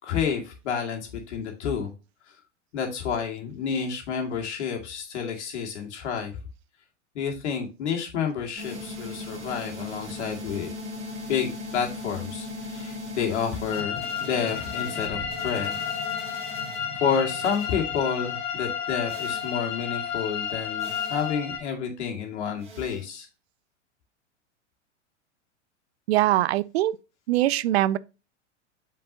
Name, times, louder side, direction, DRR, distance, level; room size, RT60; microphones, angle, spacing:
voice 1, 0.0-1.9 2.7-6.3 7.1-10.7 11.3-15.7 16.9-23.3, left 7 dB, 65° left, 2.3 m, -30 dB
sound 1, 8.6-16.9 17.4-17.8 19.1-19.5 20.8-21.3 22.6-23.0, left 1 dB, 20° right, 3.0 m, -39 dB
sound 2, 13.7-21.6, left 8 dB, 50° left, 2.2 m, -32 dB
voice 2, 26.1-26.9 27.3-28.0, right 15 dB, 60° right, 0.5 m, -22 dB
7.7 x 4.7 x 2.8 m
hypercardioid pair, 100°, 36 cm